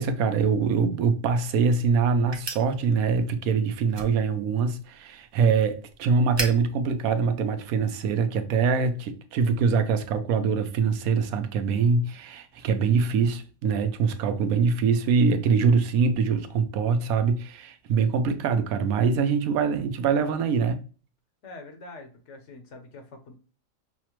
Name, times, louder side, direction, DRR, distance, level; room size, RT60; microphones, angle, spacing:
voice 1, 0.0-20.8, right 5 dB, 85° right, 1.0 m, -24 dB
sound 1, 0.9-8.1, right 3 dB, 45° right, 0.3 m, -41 dB
voice 2, 21.4-23.3, left 2 dB, 60° left, 1.1 m, -44 dB
5.6 x 2.1 x 2.9 m
omnidirectional pair, 1.4 m